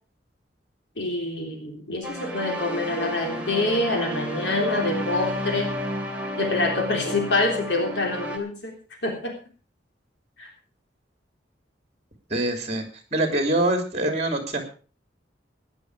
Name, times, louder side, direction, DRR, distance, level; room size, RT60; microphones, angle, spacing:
voice 1, 1.0-5.7 6.4-8.7 9.0-9.3 10.4-10.5, left 2 dB, 70° left, 2 dB, 3.5 m, -26 dB
sound 1, 2.0-8.4, equal, 5° right, 2.7 m, -31 dB
voice 2, 12.3-12.8 13.1-14.7, right 1 dB, 35° right, 5 dB, 3.3 m, -24 dB
15.5 x 10.5 x 4.9 m, 0.37 s
head